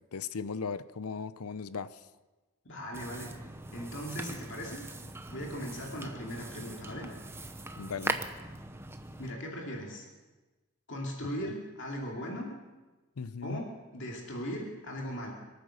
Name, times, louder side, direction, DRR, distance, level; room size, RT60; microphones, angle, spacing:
voice 1, 0.1-2.1 7.8-8.2 11.4-11.5 13.2-13.6, left 5 dB, 85° left, 15 dB, 0.7 m, -37 dB
voice 2, 2.6-3.4 3.7-4.9 5.3-7.1 9.2-10.1 10.9-12.5 13.4-13.7 13.9-15.3, equal, 55° left, -1 dB, 2.6 m, -38 dB
sound 1, 2.9-9.3, right 2 dB, 10° right, 0.7 m, -40 dB
24.0 x 9.2 x 6.4 m, 1.2 s
head